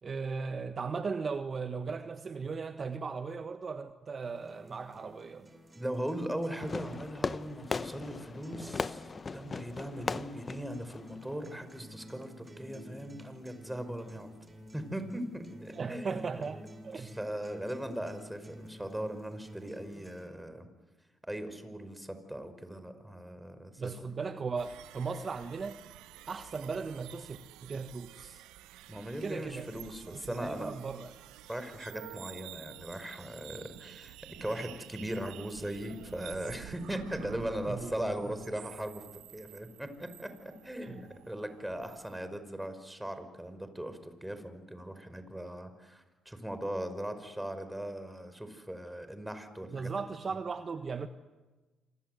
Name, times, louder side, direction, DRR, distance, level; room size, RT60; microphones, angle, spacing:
voice 1, 0.0-5.5 15.7-17.1 23.8-25.8 26.3-28.4 29.2-29.7 30.1-31.1 37.7-37.9 40.8-41.0 49.7-51.1, right 5 dB, 45° right, 8 dB, 1.5 m, -37 dB
sound 1, 4.2-20.2, equal, 20° right, 7.7 m, -52 dB
voice 2, 5.7-14.3 14.7-16.2 17.0-20.7 21.3-23.9 28.9-30.7 31.5-34.2 34.4-49.9 50.3-50.4, right 1 dB, 5° right, 9 dB, 5.4 m, -39 dB
Fireworks, 6.6-11.6, left 4 dB, 40° left, 0.9 m, -38 dB
sound 2, 24.6-42.2, right 14 dB, 75° right, 1.2 m, -51 dB
27.5 x 26.5 x 8.0 m, 1.2 s
hypercardioid pair, 50°, 0 cm